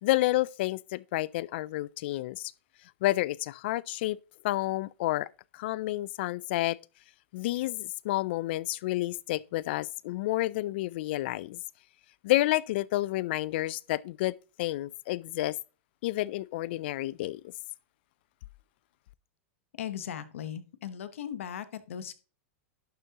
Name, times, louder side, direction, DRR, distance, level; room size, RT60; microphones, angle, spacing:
voice 1, 0.0-2.5 3.0-4.2 4.4-5.3 5.5-6.8 7.3-11.6 12.2-15.6 16.0-17.4, left 17 dB, 55° left, 0.4 m, -30 dB
voice 2, 19.8-22.1, left 9 dB, 90° left, 1.0 m, -38 dB
11.0 x 7.4 x 2.9 m
supercardioid pair, 160°, 7 cm